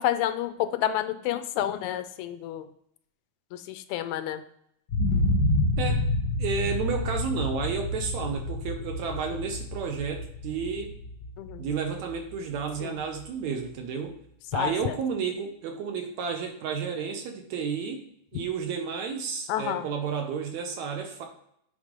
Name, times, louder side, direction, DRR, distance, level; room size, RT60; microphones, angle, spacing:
voice 1, 0.0-2.7 3.5-4.4 11.4-11.7 12.8-12.9 14.5-14.9 19.5-19.9, left 12 dB, 80° left, 10 dB, 1.8 m, -29 dB
sound 1, 4.9-12.8 13.2-13.3, left 2 dB, 60° left, 1.2 m, -29 dB
voice 2, 6.4-10.9 11.6-14.2 14.5-18.0 18.3-21.3, right 6 dB, 70° right, 3 dB, 2.0 m, -31 dB
8.1 x 3.5 x 5.1 m, 0.72 s
omnidirectional pair, 3.7 m